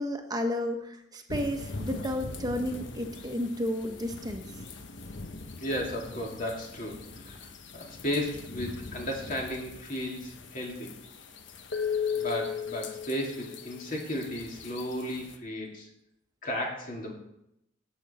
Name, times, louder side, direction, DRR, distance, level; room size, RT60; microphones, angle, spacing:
voice 1, 0.0-4.4, left 1 dB, 20° right, 4 dB, 1.2 m, -32 dB
sound 1, 1.3-15.4, left 5 dB, 75° left, 1.1 m, -39 dB
voice 2, 5.6-7.5 7.7-10.9 12.1-15.9 16.4-17.1, equal, 45° left, -1 dB, 2.4 m, -34 dB
17.5 x 7.2 x 4.3 m, 0.81 s
head